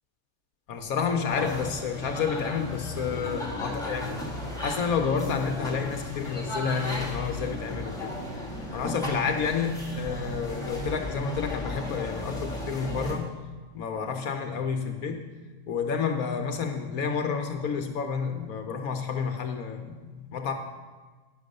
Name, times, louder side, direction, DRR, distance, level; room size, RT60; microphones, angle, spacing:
voice 1, 0.7-4.2 4.6-8.1 8.7-13.3 13.7-15.2 15.7-20.5, left 6 dB, 65° left, 5 dB, 1.1 m, -30 dB
sound 1, 1.3-13.1, left 1 dB, ahead, 1.9 m, -35 dB
9.6 x 6.1 x 6.5 m, 1.3 s
omnidirectional pair, 1.7 m